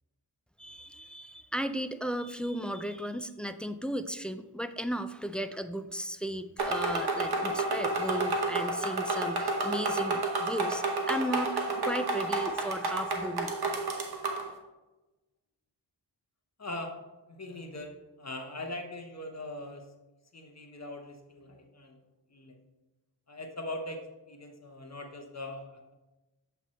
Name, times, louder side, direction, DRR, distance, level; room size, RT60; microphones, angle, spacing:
voice 1, 0.6-13.6, equal, 5° left, 10 dB, 0.3 m, -35 dB
sound 1, 6.6-14.5, right 2 dB, 55° right, 1.1 m, -30 dB
voice 2, 16.6-16.9 17.3-19.9 20.3-22.0 22.3-22.6 23.3-24.0 24.3-25.9, left 1 dB, 35° left, 3 dB, 1.0 m, -41 dB
7.3 x 3.4 x 4.3 m, 1.1 s
cardioid pair, 50°, 45 cm